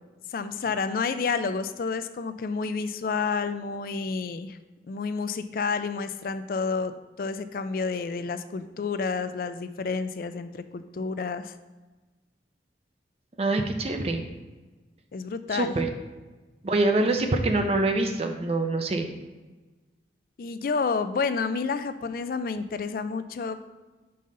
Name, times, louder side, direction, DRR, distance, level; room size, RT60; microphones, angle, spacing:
voice 1, 0.3-4.6 4.9-6.9 7.2-11.5 15.1-15.7 20.4-23.6, left 4 dB, 55° left, 11 dB, 0.3 m, -30 dB
voice 2, 13.4-14.2 15.5-15.9 16.6-19.1, right 2 dB, 35° right, 5 dB, 0.5 m, -25 dB
5.4 x 3.7 x 5.4 m, 1.2 s
head